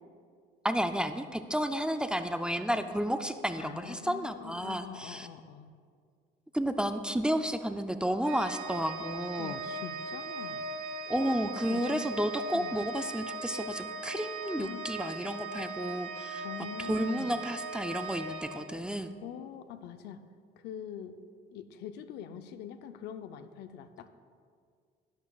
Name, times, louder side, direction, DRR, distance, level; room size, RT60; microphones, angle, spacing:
voice 1, 0.6-5.3 6.5-9.6 11.1-16.5 16.9-19.1, equal, 5° right, 8 dB, 0.4 m, -32 dB
voice 2, 3.6-5.7 9.4-10.6 11.7-12.1 12.5-12.8 14.6-14.8 16.4-17.4 19.2-20.2 20.6-21.2 21.5-24.1, left 9 dB, 80° left, 10 dB, 0.6 m, -44 dB
Organ, 8.2-19.1, right 3 dB, 90° right, 1.2 m, -39 dB
11.5 x 11.0 x 2.3 m, 2.1 s
cardioid pair, 110°, 17 cm